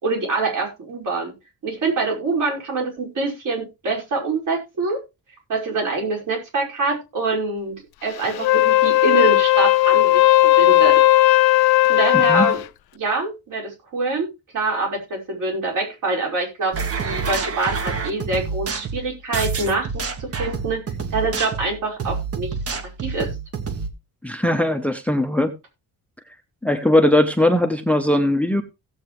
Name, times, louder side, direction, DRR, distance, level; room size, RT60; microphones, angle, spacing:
voice 1, 0.0-1.3 1.6-5.0 5.5-7.8 8.0-11.0 11.9-12.6 12.9-14.3 14.5-20.8 21.1-22.5 23.0-23.3, right 3 dB, 55° right, -1 dB, 5.5 m, -25 dB
Wind instrument woodwind instrument, 8.3-12.6, left 16 dB, 85° left, 0.7 m, -15 dB
voice 2, 12.1-12.5 24.2-25.5 26.6-28.6, left 1 dB, 5° left, 9 dB, 0.8 m, -19 dB
sound 1, 16.7-23.9, right 5 dB, 40° right, 1.5 m, -28 dB
16.5 x 8.1 x 3.2 m, 0.25 s
wide cardioid pair, 170°, 36 cm